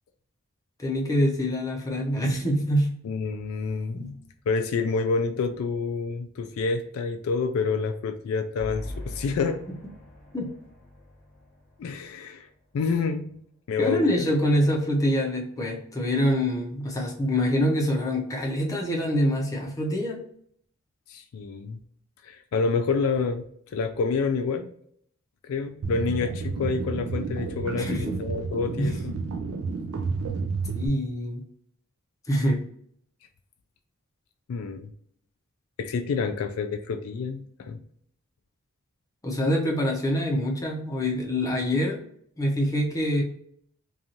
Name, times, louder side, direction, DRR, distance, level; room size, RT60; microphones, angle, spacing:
voice 1, 0.8-2.9 3.9-4.1 10.3-10.5 13.8-20.3 27.8-28.2 28.8-28.9 30.7-31.4 32.3-32.6 39.2-42.0 42.4-43.2, equal, 15° left, -1 dB, 0.6 m, -25 dB
voice 2, 3.0-4.2 4.5-9.6 11.8-12.5 12.7-13.4 13.7-14.2 21.1-21.8 22.2-23.5 23.7-24.7 25.4-29.2 34.5-34.9 35.8-37.8, left 4 dB, 70° left, 7 dB, 0.3 m, -28 dB
sound 1, 8.6-12.1, left 1 dB, ahead, 1.0 m, -42 dB
sound 2, 25.8-30.9, right 4 dB, 70° right, 0.4 m, -31 dB
2.6 x 2.3 x 2.9 m, 0.65 s
head